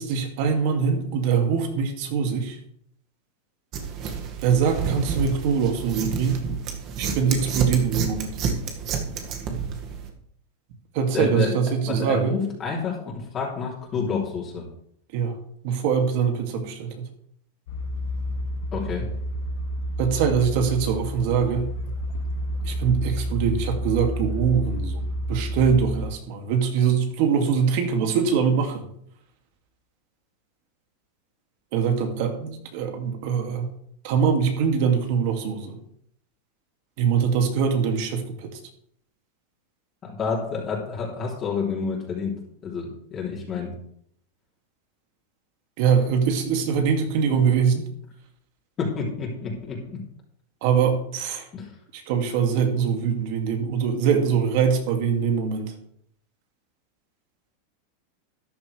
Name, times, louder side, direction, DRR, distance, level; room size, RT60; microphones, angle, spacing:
voice 1, 0.0-2.6 4.4-6.4 7.0-8.4 8.9-9.0 10.9-12.4 15.1-15.3 15.6-17.1 20.0-21.7 22.6-25.0 25.3-28.9 31.7-33.7 34.0-35.8 37.0-38.6 45.8-47.9 50.6-51.5 51.9-55.7, right 6 dB, 60° right, 4 dB, 2.5 m, -23 dB
sound 1, 3.7-10.1, right 6 dB, 45° right, 2.0 m, -30 dB
voice 2, 11.1-11.5 11.9-14.7 18.7-19.1 40.0-43.8 48.8-50.0 51.5-51.7, left 5 dB, 30° left, -3 dB, 3.3 m, -29 dB
sound 2, 17.7-26.1, equal, 65° left, 1.4 m, -30 dB
13.0 x 10.5 x 3.4 m, 0.69 s
supercardioid pair, 130°, 0 cm